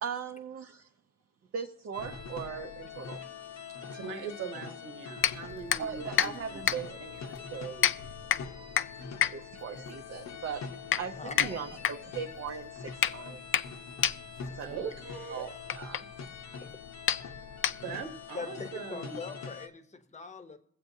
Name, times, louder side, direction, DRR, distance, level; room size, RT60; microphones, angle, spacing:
voice 1, 0.0-0.9 1.5-3.3 5.8-8.0 9.3-10.7 10.9-13.5 14.4-14.9 15.3-16.1, right 6 dB, 45° right, 0.7 m, -39 dB
sound 1, 1.9-19.7, left 5 dB, 60° left, 1.0 m, -44 dB
voice 2, 3.9-7.0 14.6-15.5 17.7-19.2, right 6 dB, 85° right, 1.2 m, -41 dB
sound 2, 5.2-18.2, left 10 dB, 45° left, 0.4 m, -32 dB
voice 3, 8.9-9.4 11.2-11.6 16.6-17.1 18.3-20.6, left 4 dB, 20° left, 1.0 m, -43 dB
22.0 x 7.6 x 2.7 m
cardioid pair, 100°, 31 cm